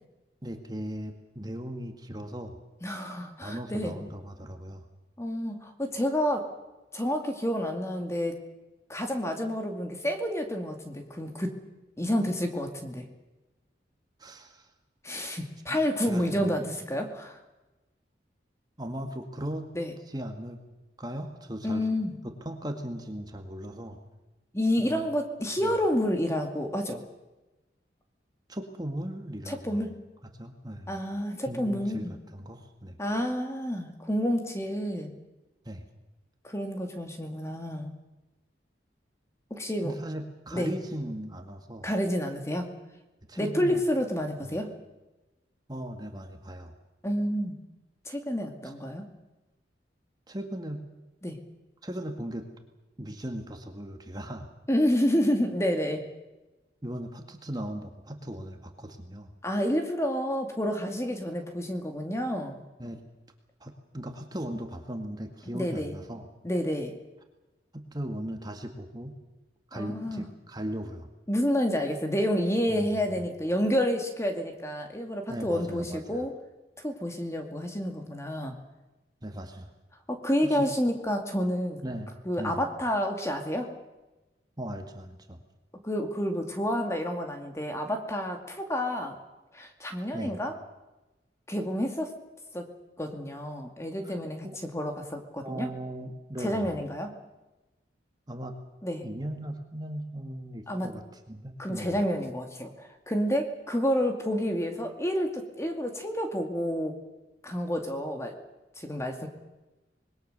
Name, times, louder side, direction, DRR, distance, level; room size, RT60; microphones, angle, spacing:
voice 1, 0.4-2.6 3.4-4.8 14.2-14.7 15.7-15.8 16.0-16.5 18.8-19.7 20.1-20.6 21.0-21.8 22.5-24.0 24.8-25.1 25.6-25.7 28.5-29.9 30.4-31.0 31.5-32.1 32.3-33.0 35.7-35.8 39.8-41.9 43.3-43.8 45.7-46.7 48.6-48.7 50.3-50.9 51.8-52.5 53.0-54.5 56.8-59.3 62.8-63.0 63.6-66.3 67.7-69.2 69.7-71.1 72.7-73.2 75.3-76.3 79.2-79.7 80.4-80.7 81.8-82.6 84.6-85.4 90.1-90.4 94.0-94.1 94.4-94.6 95.4-96.8 98.3-98.6 99.0-101.0 101.3-102.0, right 1 dB, 20° right, 5 dB, 1.9 m, -38 dB
voice 2, 2.8-4.0 5.2-6.5 6.9-8.4 8.9-11.6 12.0-13.1 15.0-17.4 19.7-19.9 21.6-22.2 24.5-27.0 29.5-29.9 30.9-32.1 33.0-35.2 36.4-37.9 39.5-39.9 40.5-40.7 41.8-42.7 43.4-44.7 47.0-47.5 48.1-49.1 51.2-51.4 54.7-56.1 59.4-62.6 65.5-65.9 66.4-67.0 69.7-70.3 71.3-76.3 76.8-78.6 80.1-81.8 82.2-83.7 85.8-89.2 89.5-90.5 91.5-92.1 92.5-92.7 93.0-95.7 96.4-97.1 98.8-99.0 100.7-101.0 101.6-107.0 107.4-108.4 108.8-109.3, equal, 15° left, 4 dB, 2.4 m, -29 dB
26.0 x 21.0 x 6.8 m, 1.1 s
head